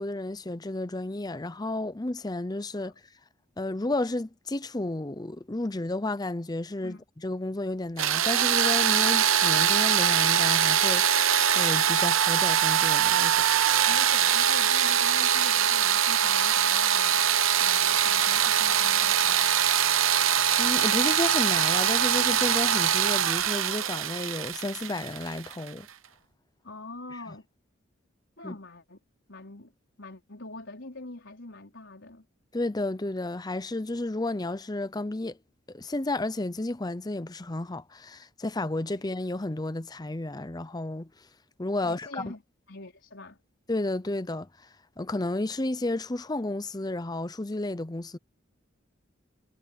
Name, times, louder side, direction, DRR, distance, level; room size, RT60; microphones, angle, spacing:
voice 1, 0.0-2.9 3.6-13.5 20.6-25.9 28.4-28.6 32.5-35.4 35.7-41.1 41.6-42.3 43.7-44.7 45.0-48.2, left 2 dB, 20° left, 0.7 m, -32 dB
sound 1, 8.0-25.7, right 9 dB, 85° right, 1.0 m, -23 dB
voice 2, 13.3-19.5 26.6-27.5 28.4-29.0 29.3-29.7 30.0-32.3 41.8-42.4 42.7-43.4, left 2 dB, 70° left, 4.5 m, -44 dB
head